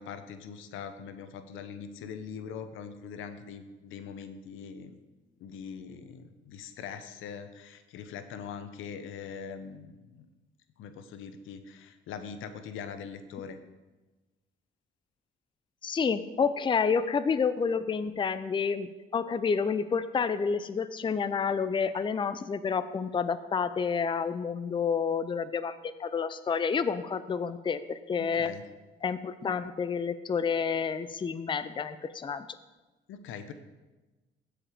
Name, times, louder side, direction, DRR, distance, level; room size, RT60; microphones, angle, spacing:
voice 1, 0.0-5.0 5.4-10.3 10.8-13.6 28.2-28.6 33.1-33.5, left 6 dB, 85° left, 10 dB, 0.8 m, -42 dB
voice 2, 15.8-28.5 29.0-32.5, left 6 dB, 25° left, 12 dB, 0.5 m, -29 dB
15.0 x 5.0 x 4.9 m, 1.2 s
cardioid pair, 90°, 20 cm